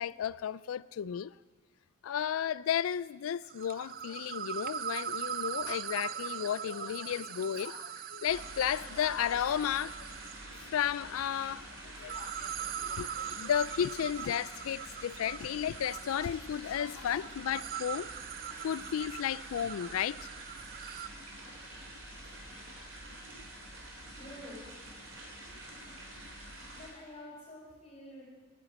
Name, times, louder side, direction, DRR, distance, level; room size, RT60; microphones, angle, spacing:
voice 1, 0.0-1.3 2.0-10.1 10.7-11.7 12.0-18.1 18.6-20.3, left 9 dB, 85° left, 0.3 m, -33 dB
sound 1, 3.4-10.6 12.0-21.1, right 9 dB, 45° right, 0.4 m, -41 dB
sound 2, 8.3-26.9, right 1 dB, 75° right, 3.4 m, -47 dB
voice 2, 24.2-24.7 26.7-28.2, left 1 dB, 30° left, 5.2 m, -48 dB
11.0 x 9.2 x 8.9 m
head